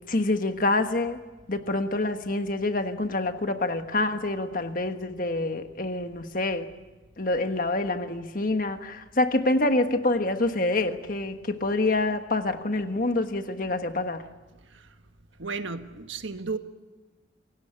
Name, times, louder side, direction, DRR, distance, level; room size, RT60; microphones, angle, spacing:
voice 1, 0.1-1.2 1.5-6.7 7.2-14.3, left 2 dB, 45° left, 7 dB, 1.4 m, -26 dB
voice 2, 15.4-16.6, right 4 dB, 75° right, 8 dB, 1.5 m, -33 dB
27.5 x 17.5 x 8.9 m, 1.2 s
head